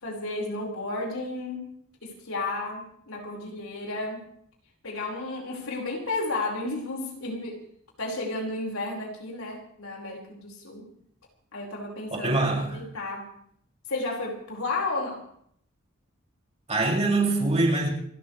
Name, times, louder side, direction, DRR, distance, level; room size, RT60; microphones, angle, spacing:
voice 1, 0.0-1.7 2.0-4.2 4.8-7.6 8.0-10.9 11.5-12.5 12.7-13.3 13.9-15.2, left 2 dB, 85° left, 5.1 m, -32 dB
voice 2, 12.1-12.8 16.7-17.9, right 2 dB, 30° right, 6.3 m, -24 dB
30.0 x 13.0 x 3.3 m
head